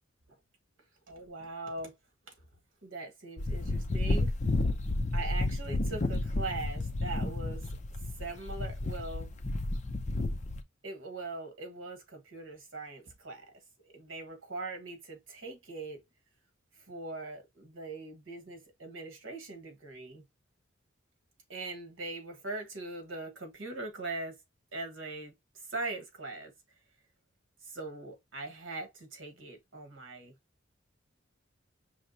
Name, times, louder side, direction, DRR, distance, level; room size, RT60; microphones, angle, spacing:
voice 1, 1.1-2.0 2.3-2.4 2.8-4.3 5.1-7.7 8.2-9.4 10.8-13.5 13.9-16.0 16.7-20.2 21.5-24.4 24.7-26.5 27.6-30.3, right 2 dB, 75° right, 1.4 m, -41 dB
sound 1, 3.4-10.6, left 2 dB, 35° left, 0.5 m, -31 dB
5.7 x 3.1 x 2.7 m
head